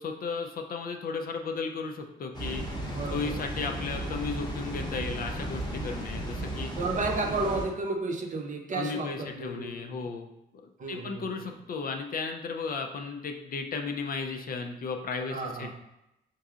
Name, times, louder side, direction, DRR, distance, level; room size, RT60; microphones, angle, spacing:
voice 1, 0.0-2.6 3.1-6.7 8.7-10.3 10.9-15.7, left 4 dB, 45° left, 4 dB, 0.4 m, -34 dB
Water, 2.3-7.7, right 1 dB, 20° left, 0.9 m, -35 dB
voice 2, 2.9-3.4 6.8-10.0 10.8-11.5 15.3-15.7, right 3 dB, 40° right, 1 dB, 0.7 m, -32 dB
4.5 x 2.7 x 2.4 m, 0.87 s
cardioid pair, 90°, 20 cm